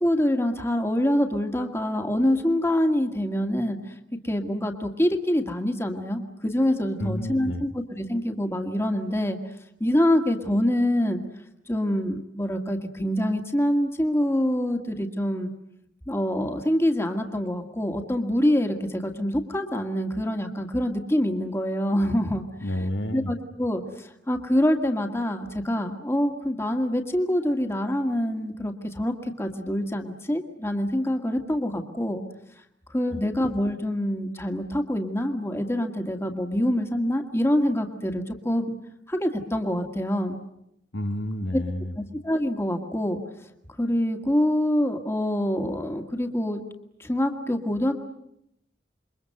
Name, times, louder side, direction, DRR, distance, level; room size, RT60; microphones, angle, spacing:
voice 1, 0.0-3.8 4.2-9.4 9.8-11.2 11.7-15.5 16.1-22.4 23.1-32.2 32.9-38.8 39.1-40.4 41.5-41.6 42.0-43.2 43.8-46.6 47.0-47.9, equal, 15° left, 4 dB, 2.1 m, -25 dB
voice 2, 7.0-7.6 22.6-23.3 33.1-33.2 40.9-42.0, left 1 dB, 75° left, 8 dB, 1.8 m, -30 dB
28.0 x 23.0 x 7.9 m, 0.79 s
head